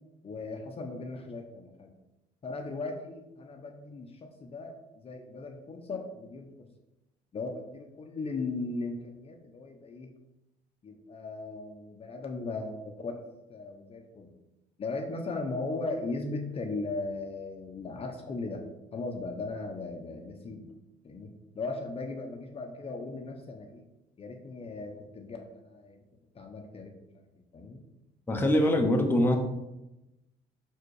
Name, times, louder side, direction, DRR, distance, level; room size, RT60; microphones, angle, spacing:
voice 1, 0.2-1.9 2.4-6.7 7.3-10.1 10.8-13.2 13.5-14.3 14.8-18.7 18.9-20.7 21.0-23.8 24.2-26.0 26.3-27.3 27.5-27.8, left 3 dB, 35° left, 3 dB, 0.9 m, -37 dB
voice 2, 28.3-29.4, left 1 dB, 10° left, 1 dB, 1.0 m, -23 dB
5.8 x 4.9 x 4.9 m, 0.95 s
cardioid pair, 110°, 17 cm